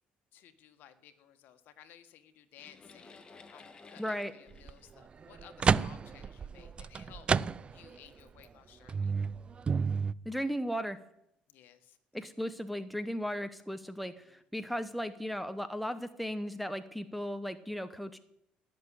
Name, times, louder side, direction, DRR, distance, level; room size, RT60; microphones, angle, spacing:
voice 1, 0.3-3.2 3.5-7.3 7.7-9.1 11.5-12.2, left 10 dB, 70° left, 9 dB, 1.6 m, -57 dB
sound 1, 2.6-5.9 6.7-6.9 7.5-7.6, left 4 dB, 30° left, 1.7 m, -55 dB
voice 2, 4.0-4.3 10.2-11.0 12.1-18.2, equal, ahead, 10 dB, 0.9 m, -36 dB
sound 2, 4.5-4.7 5.2-8.0 8.4-8.5 8.9-10.1, right 5 dB, 35° right, 0.4 m, -30 dB
17.5 x 6.8 x 10.0 m, 0.80 s
cardioid pair, 95°, 3 cm